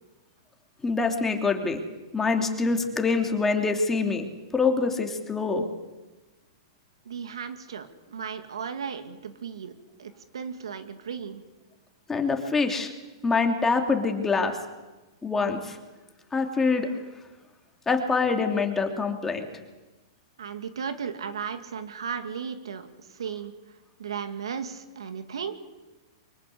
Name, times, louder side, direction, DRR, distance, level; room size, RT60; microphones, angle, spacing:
voice 1, 0.8-1.8 2.1-4.2 4.5-5.6 12.1-12.9 13.2-14.6 15.2-15.8 16.3-16.9 17.9-19.5, left 4 dB, 10° left, 3 dB, 3.1 m, -25 dB
voice 2, 7.1-9.7 10.0-11.4 20.4-22.9 23.2-23.5 24.0-25.6, right 7 dB, 85° right, 8 dB, 2.3 m, -35 dB
24.0 x 23.0 x 8.6 m, 1.1 s
hypercardioid pair, 130°, 3 cm